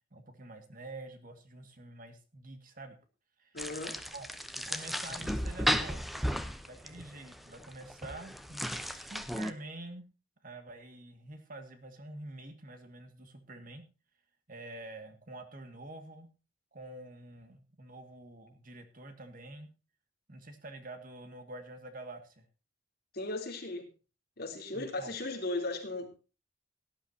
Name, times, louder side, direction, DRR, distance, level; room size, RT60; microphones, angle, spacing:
voice 1, 0.1-3.0 3.4-3.6 4.1-4.3 4.5-6.2 6.7-10.1 10.4-13.9 14.5-16.3 16.7-19.7 20.3-22.4 24.7-25.2, right 2 dB, 45° right, 7 dB, 2.1 m, -47 dB
voice 2, 3.5-4.0 23.1-23.9 24.4-26.1, left 2 dB, 55° left, 2 dB, 3.4 m, -36 dB
sound 1, 3.6-9.5, equal, ahead, 0.9 m, -35 dB
18.0 x 11.0 x 2.8 m, 0.32 s
head